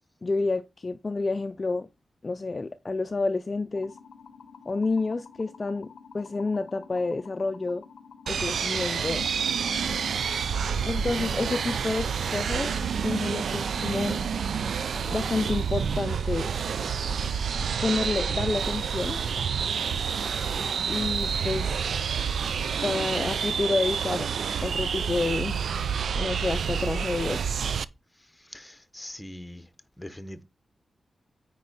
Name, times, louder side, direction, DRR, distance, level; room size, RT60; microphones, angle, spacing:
voice 1, 0.2-1.9 2.2-4.0 4.7-5.9 6.1-7.8 8.3-9.3 10.9-12.7 13.0-14.2 15.1-16.5 17.8-19.2 20.9-21.8 22.8-24.3 24.6-25.6 26.1-27.4, left 3 dB, 30° left, 0.4 m, -29 dB
sound 1, 3.7-21.6, left 6 dB, 85° left, 0.6 m, -49 dB
sound 2, 8.3-27.8, right 7 dB, 85° right, 0.4 m, -28 dB
voice 2, 28.4-29.7 30.0-30.4, left 1 dB, 10° left, 0.8 m, -42 dB
9.4 x 4.5 x 4.0 m
wide cardioid pair, 175°, 0 cm